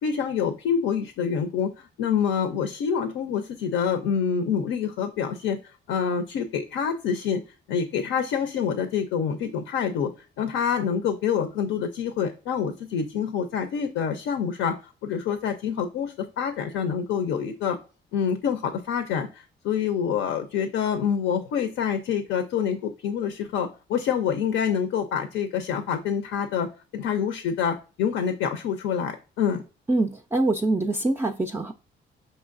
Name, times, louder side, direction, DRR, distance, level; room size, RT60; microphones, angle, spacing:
voice 1, 0.0-1.7 2.0-5.6 5.9-7.4 7.7-10.1 10.4-14.8 15.0-17.8 18.1-29.6, left 7 dB, 90° left, 7 dB, 0.6 m, -26 dB
voice 2, 29.9-31.7, right 2 dB, 10° right, 6 dB, 0.3 m, -24 dB
5.5 x 3.1 x 2.5 m, 0.33 s
cardioid pair, 90°, 20 cm